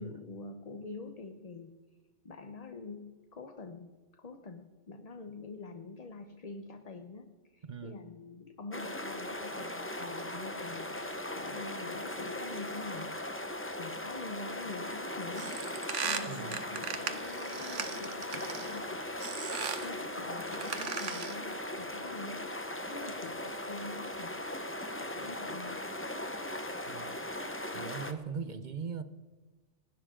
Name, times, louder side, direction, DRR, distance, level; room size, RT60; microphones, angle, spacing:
voice 1, 0.0-1.7 2.2-13.3 13.8-15.5 16.0-19.0 19.8-24.7 25.0-25.8, left 3 dB, 35° left, 7 dB, 0.9 m, -46 dB
voice 2, 7.7-8.0 16.3-16.6 26.9-27.2 27.7-29.0, right 6 dB, 45° right, 11 dB, 0.8 m, -40 dB
sound 1, 8.7-28.1, left 1 dB, 10° left, 1.0 m, -39 dB
sound 2, 15.3-18.8 19.2-19.9 20.5-21.5, right 6 dB, 85° right, 1.4 m, -37 dB
29.0 x 12.0 x 3.7 m, 1.3 s
omnidirectional pair, 1.2 m